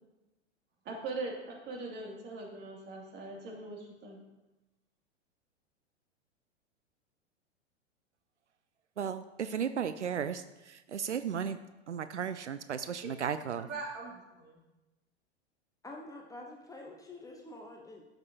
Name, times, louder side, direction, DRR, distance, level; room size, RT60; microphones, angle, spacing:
voice 1, 0.8-4.2 13.6-14.6, right 3 dB, 30° right, -1 dB, 2.6 m, -41 dB
voice 2, 9.0-11.6 11.9-13.7, right 7 dB, 85° right, 12 dB, 0.5 m, -35 dB
voice 3, 15.8-18.0, left 2 dB, 10° left, 1 dB, 1.0 m, -47 dB
13.0 x 6.6 x 2.8 m, 1.0 s
figure-of-eight pair, 100°, 34 cm